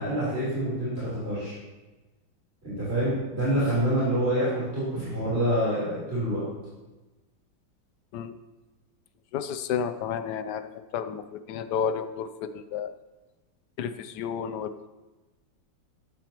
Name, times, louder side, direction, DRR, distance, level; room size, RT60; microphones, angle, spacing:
voice 1, 0.0-1.6 2.6-6.4, right 1 dB, 30° right, -11 dB, 4.2 m, -27 dB
voice 2, 9.3-12.9 13.8-14.9, left 7 dB, 70° left, 11 dB, 1.1 m, -31 dB
15.0 x 9.3 x 3.0 m, 1.1 s
omnidirectional pair, 2.1 m